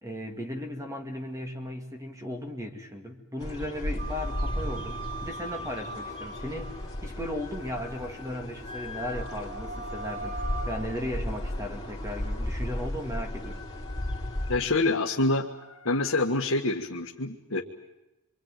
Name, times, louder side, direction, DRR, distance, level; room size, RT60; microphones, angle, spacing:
voice 1, 0.0-13.6, left 1 dB, 15° right, 3 dB, 2.4 m, -36 dB
sound 1, 3.4-14.6, left 1 dB, 20° left, 4.3 m, -35 dB
Wind instrument woodwind instrument, 4.0-7.0 7.4-8.1 8.6-10.8, right 2 dB, 35° right, 6.2 m, -41 dB
sound 2, 6.5-12.1 13.0-16.3, equal, 85° left, 2.2 m, -46 dB
voice 2, 14.5-15.5 15.9-17.6, left 2 dB, 65° left, 0 dB, 1.7 m, -26 dB
27.0 x 24.5 x 9.1 m, 0.95 s
head